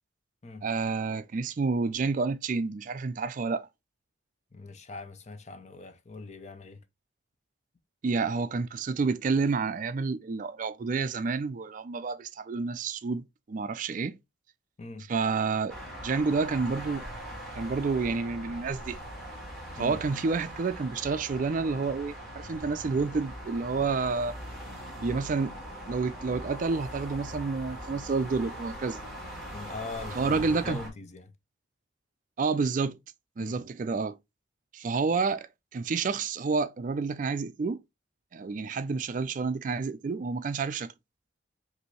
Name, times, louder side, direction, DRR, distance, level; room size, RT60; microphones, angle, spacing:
voice 1, 0.6-3.7 8.0-14.2 15.1-15.8 16.0-17.0 17.5-19.0 19.8-24.4 25.0-25.5 25.9-29.0 30.2-30.8 32.4-33.0 33.4-34.2 34.7-37.8 38.3-40.9, right 4 dB, 40° right, 0.3 m, -29 dB
voice 2, 4.5-6.8 14.8-15.1 19.8-20.0 29.4-31.3 33.4-33.6, left 3 dB, 35° left, 0.6 m, -41 dB
sound 1, 15.7-30.9, equal, ahead, 1.9 m, -41 dB
5.2 x 2.7 x 3.0 m
head